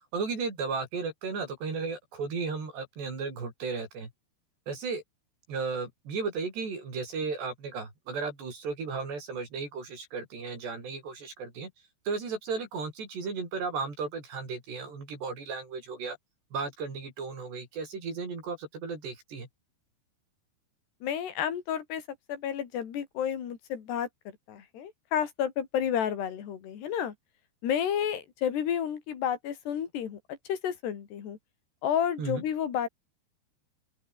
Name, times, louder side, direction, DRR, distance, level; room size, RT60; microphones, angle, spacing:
voice 1, 0.1-4.1 4.7-5.0 5.5-11.7 12.1-16.2 16.5-19.5 32.2-32.4, right 4 dB, 65° right, 9.1 m, -35 dB
voice 2, 21.0-22.0 22.3-24.1 24.5-27.1 27.6-31.4 31.8-32.9, left 9 dB, 65° left, 5.0 m, -31 dB
open air
omnidirectional pair, 5.2 m